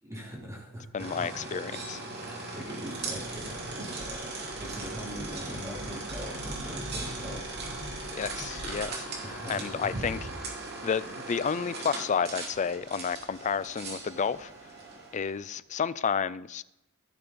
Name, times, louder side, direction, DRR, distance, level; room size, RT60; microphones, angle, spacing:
voice 1, 0.0-1.1 2.1-7.5 9.2-9.9, equal, 15° right, 3.3 m, -42 dB
voice 2, 0.9-2.0 8.1-9.1 9.5-10.2 10.8-14.5 15.1-16.6, left 6 dB, 35° left, 0.4 m, -31 dB
sound 1, 1.0-15.4, right 2 dB, 50° right, 2.8 m, -39 dB
sound 2, 2.9-3.6 4.0-10.0, equal, 70° right, 2.3 m, -44 dB
15.5 x 6.2 x 5.1 m
head